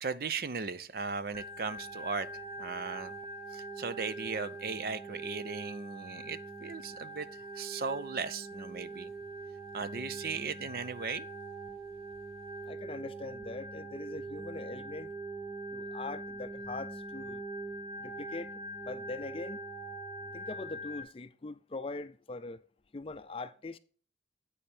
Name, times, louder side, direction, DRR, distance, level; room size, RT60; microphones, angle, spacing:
voice 1, 0.0-3.2 3.5-9.1 9.7-11.3, right 5 dB, 55° right, 0.5 m, -37 dB
Organ, 1.3-21.0, right 2 dB, 30° right, 0.8 m, -43 dB
voice 2, 12.7-15.1 15.7-17.4 18.0-18.5 18.9-19.6 20.3-22.6 22.9-23.8, left 3 dB, 30° left, 0.4 m, -42 dB
8.5 x 5.2 x 4.3 m
head